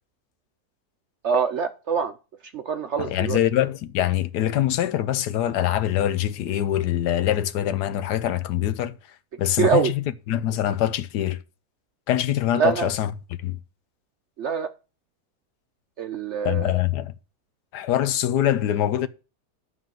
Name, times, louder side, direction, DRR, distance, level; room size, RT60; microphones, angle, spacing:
voice 1, 1.2-2.1 2.5-3.4 9.6-9.9 12.6-12.9 14.4-14.7 16.0-16.8, right 6 dB, 65° right, 0.7 m, -24 dB
voice 2, 3.0-8.9 9.4-11.4 12.1-13.1 13.4-13.6 16.4-17.1 17.7-19.1, left 12 dB, 80° left, 1.3 m, -24 dB
11.0 x 4.0 x 7.4 m
omnidirectional pair, 1.8 m